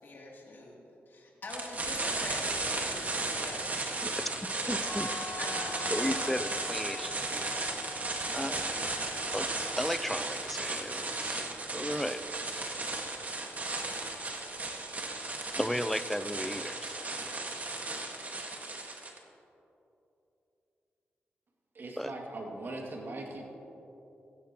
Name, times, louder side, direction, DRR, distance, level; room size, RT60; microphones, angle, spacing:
voice 1, 0.0-0.7 1.1-4.0 4.6-6.3, left 2 dB, 55° left, -3 dB, 3.0 m, -44 dB
sound 1, 1.5-19.2, right 2 dB, 40° right, 1.7 m, -35 dB
voice 2, 4.4-5.1 5.9-7.4 7.8-8.6 9.3-12.2 15.6-17.2 22.0-22.1, equal, 5° left, 13 dB, 0.5 m, -35 dB
sound 2, 4.9-10.7, left 4 dB, 20° left, 2.3 m, -45 dB
voice 3, 21.7-23.5, right 2 dB, 60° right, 0 dB, 2.4 m, -40 dB
16.5 x 15.5 x 3.0 m, 3.0 s
cardioid pair, 80°, 4 cm